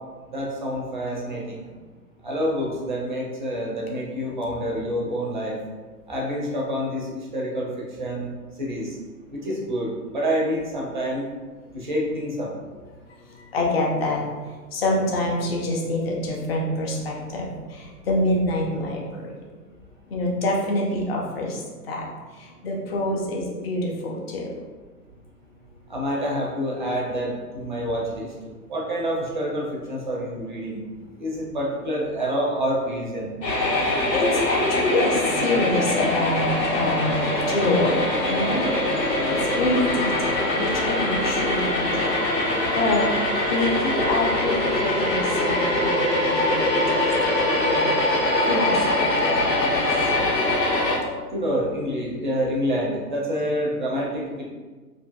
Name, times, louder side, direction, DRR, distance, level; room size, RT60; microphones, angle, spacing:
voice 1, 0.3-1.6 2.2-5.6 6.1-7.7 8.0-8.3 8.6-9.0 9.3-11.2 11.7-12.5 25.9-28.3 28.7-30.8 31.2-33.3 51.3-54.4, equal, 35° right, -3 dB, 0.4 m, -27 dB
voice 2, 13.5-14.2 14.7-19.3 20.1-21.6 21.9-22.1 22.6-24.5 33.8-38.0 38.3-38.7 39.3-42.2 42.8-43.0 43.5-47.0 47.4-47.9 48.5-49.0 49.7-49.9, left 1 dB, 40° left, -1 dB, 0.5 m, -26 dB
sound 1, 33.4-51.0, left 1 dB, 85° left, 0.8 m, -23 dB
2.5 x 2.5 x 2.3 m, 1.3 s
figure-of-eight pair, 120°, 48 cm